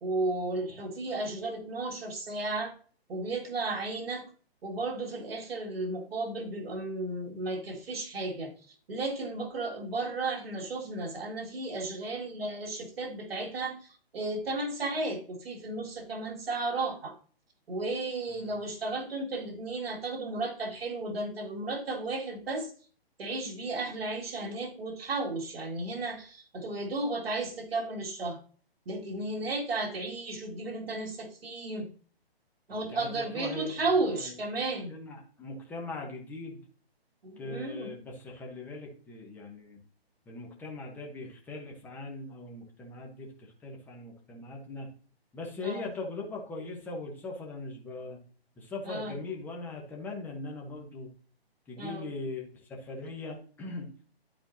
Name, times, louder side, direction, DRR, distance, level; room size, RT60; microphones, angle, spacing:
voice 1, 0.0-2.7 3.1-4.3 4.6-17.2 17.7-22.7 23.2-28.4 28.9-31.9 32.7-34.9 37.2-37.9 45.6-45.9 48.9-49.1 51.8-52.0, right 2 dB, 65° right, 0 dB, 2.2 m, -34 dB
voice 2, 18.3-18.6 32.7-34.4 34.9-36.6 37.4-39.8 40.3-44.9 45.3-48.2 48.6-51.1 51.7-53.9, left 3 dB, 5° left, -1 dB, 0.9 m, -40 dB
11.5 x 4.4 x 2.8 m, 0.42 s
hypercardioid pair, 155°, 32 cm